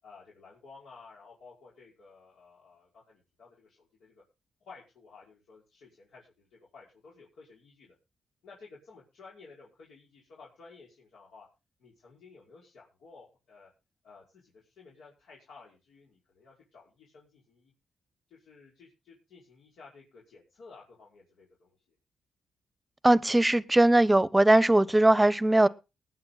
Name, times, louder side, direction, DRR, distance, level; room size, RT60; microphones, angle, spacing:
voice 1, 0.0-4.2 4.6-8.0 8.4-11.5 11.8-13.7 14.0-17.7 18.3-22.0 25.6-25.7, left 4 dB, 85° left, 5.3 m, -54 dB
voice 2, 23.0-25.7, right 1 dB, 15° right, 0.9 m, -20 dB
20.0 x 8.9 x 4.0 m
cardioid pair, 75°, 0 cm